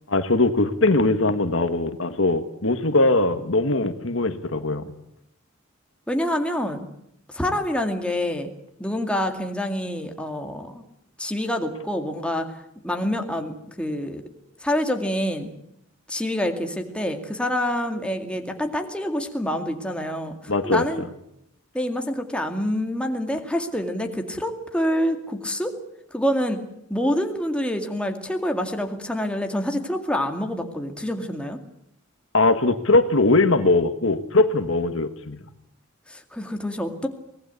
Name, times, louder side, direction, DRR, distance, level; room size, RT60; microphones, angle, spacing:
voice 1, 0.1-4.9 20.5-20.8 32.3-35.4, left 2 dB, 70° left, 9 dB, 1.7 m, -21 dB
voice 2, 6.1-6.9 7.3-8.5 8.8-10.8 11.2-14.2 14.6-15.5 16.1-21.0 21.7-25.8 26.1-26.6 26.9-31.6 36.1-37.1, equal, 5° left, 4 dB, 2.2 m, -27 dB
24.0 x 19.0 x 8.4 m, 0.77 s
head